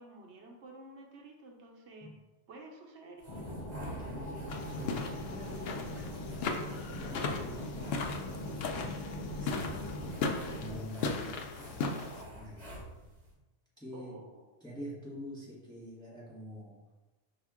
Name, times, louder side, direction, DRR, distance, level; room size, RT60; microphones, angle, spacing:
voice 1, 0.0-2.1 2.5-3.5 4.7-4.9 5.4-6.0 13.9-14.5, right 2 dB, 75° right, 1 dB, 1.1 m, -52 dB
sound 1, 3.2-13.3, equal, 35° right, 1.3 m, -50 dB
sound 2, 3.3-10.8, left 1 dB, 35° left, 0.6 m, -41 dB
voice 2, 4.0-4.5 4.7-5.8 6.6-8.0 8.3-9.7 10.5-12.1 12.3-12.8 13.8-14.2 14.6-16.8, equal, 5° left, -6 dB, 1.1 m, -46 dB
sound 3, 4.5-12.2, left 4 dB, 65° left, 0.8 m, -37 dB
5.1 x 2.9 x 3.5 m, 1.1 s
omnidirectional pair, 1.2 m